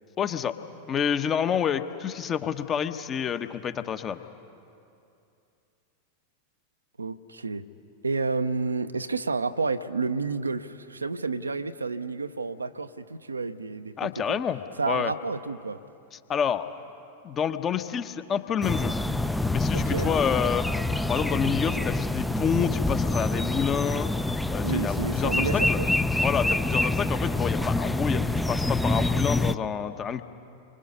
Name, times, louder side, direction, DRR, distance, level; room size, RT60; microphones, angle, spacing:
voice 1, 0.2-0.6 0.9-4.2 14.0-15.1 16.3-16.6 17.2-18.9 19.5-20.7 21.1-24.1 24.5-25.8 26.2-30.2, left 8 dB, 25° left, 10 dB, 1.1 m, -28 dB
voice 2, 7.0-7.7 8.0-14.4 14.8-15.8 19.7-20.1 24.6-25.9, right 4 dB, 80° right, 11 dB, 0.8 m, -30 dB
sound 1, 18.6-29.5, left 2 dB, 5° left, 0.6 m, -26 dB
30.0 x 25.0 x 5.5 m, 2.6 s
figure-of-eight pair, 90°, 0 cm